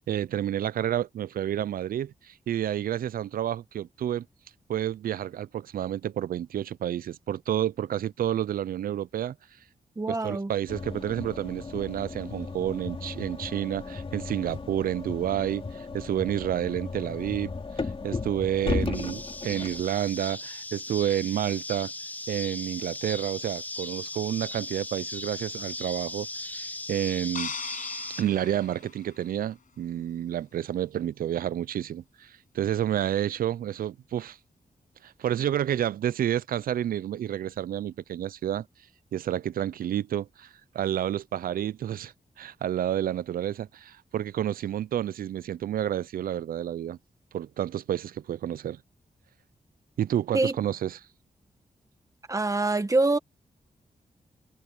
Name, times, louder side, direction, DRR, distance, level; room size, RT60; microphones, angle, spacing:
voice 1, 0.0-4.3 4.7-9.4 10.1-21.9 22.3-27.5 28.2-34.4 35.0-38.7 39.1-40.5 40.7-47.0 47.3-48.8 50.0-51.0, right 11 dB, 85° right, 0.4 m, -30 dB
voice 2, 10.0-10.5 50.3-50.5 52.3-53.2, right 2 dB, 20° right, 1.5 m, -25 dB
sound 1, 10.7-19.8, left 4 dB, 40° left, 2.7 m, -35 dB
sound 2, 18.9-28.2, left 1 dB, 10° left, 0.7 m, -38 dB
sound 3, 27.3-29.6, left 6 dB, 65° left, 7.0 m, -40 dB
wide cardioid pair, 110°, 14 cm